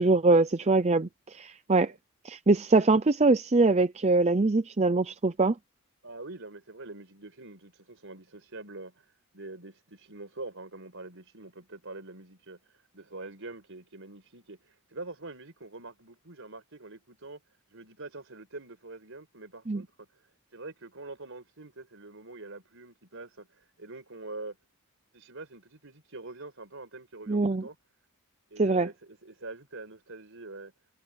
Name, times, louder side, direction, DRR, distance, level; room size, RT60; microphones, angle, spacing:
voice 1, 0.0-1.9 2.2-5.5 19.7-19.8 27.3-27.6 28.6-28.9, right 3 dB, 30° right, 0.6 m, -23 dB
voice 2, 6.0-9.1 9.3-17.4 17.7-20.1 20.5-24.6 25.1-27.8 28.5-30.7, right 2 dB, 60° right, 5.3 m, -45 dB
head